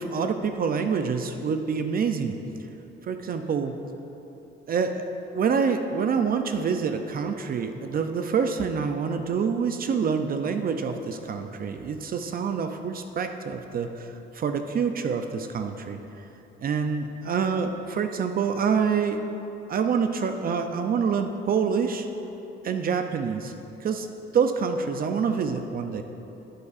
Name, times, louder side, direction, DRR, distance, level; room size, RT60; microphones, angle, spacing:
voice 1, 0.0-2.4 3.1-3.8 4.7-5.0 5.3-16.0 16.6-19.2 19.7-22.1 22.6-23.5 23.8-24.1 24.3-26.0, right 6 dB, 50° right, 7 dB, 0.5 m, -26 dB
11.0 x 7.0 x 2.5 m, 3.0 s
cardioid pair, 90°, 20 cm